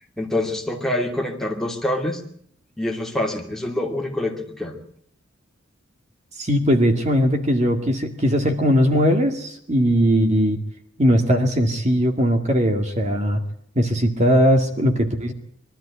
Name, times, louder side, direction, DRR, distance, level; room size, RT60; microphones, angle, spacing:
voice 1, 0.2-2.2 2.8-4.8, left 1 dB, ahead, 1 dB, 2.7 m, -26 dB
voice 2, 6.4-10.6 11.0-13.4 13.8-15.3, equal, 35° right, 5 dB, 2.1 m, -19 dB
23.0 x 13.0 x 9.8 m, 0.67 s
head